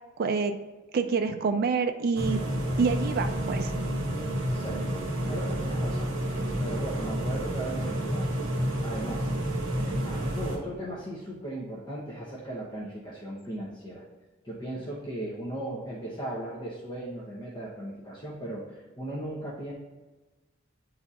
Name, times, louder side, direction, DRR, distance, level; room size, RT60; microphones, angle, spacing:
voice 1, 0.2-0.5 0.9-2.4 2.8-3.7, right 5 dB, 50° right, 6 dB, 0.4 m, -27 dB
sound 1, 2.1-10.6, right 1 dB, 70° right, 1.3 m, -30 dB
voice 2, 4.5-4.8 5.3-6.1 6.6-8.3 8.8-9.3 9.7-14.0 14.4-19.7, right 1 dB, 20° left, -6 dB, 0.9 m, -37 dB
9.3 x 4.1 x 2.4 m, 1.2 s
head